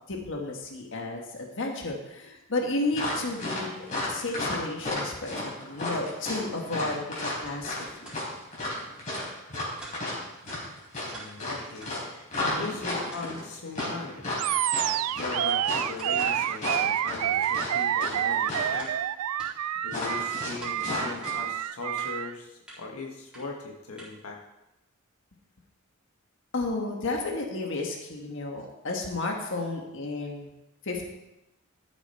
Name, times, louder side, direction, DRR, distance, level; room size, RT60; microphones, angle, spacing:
voice 1, 0.1-8.1 12.4-12.8 26.5-30.5 30.8-31.1, left 2 dB, 60° left, 1 dB, 1.6 m, -33 dB
sound 1, 2.9-18.2 18.4-18.8 19.9-21.3, left 2 dB, 35° left, 4.0 m, -33 dB
sound 2, 6.9-7.0 7.5-7.6 8.0-8.2 8.6-8.7 9.2-9.4 9.8-10.0 10.5-10.6 11.0-11.3 11.8-12.0 12.4-12.6 13.1-13.3 13.8-13.9 14.5-14.6 15.3-15.4 16.0-16.1 16.7-16.8 17.4-17.6 18.1-18.2 18.8-19.5 19.9-20.8 21.2-21.4 22.0-22.1 22.7-22.8 23.3-23.4 24.0-24.1, right 2 dB, 5° right, 3.9 m, -46 dB
voice 2, 11.0-12.3 12.5-14.2 15.2-18.9 19.8-24.4, left 3 dB, 80° left, 0 dB, 1.5 m, -39 dB
Animal, 14.4-22.3, right 11 dB, 85° right, 0.3 m, -28 dB
13.0 x 7.1 x 4.4 m, 0.94 s
head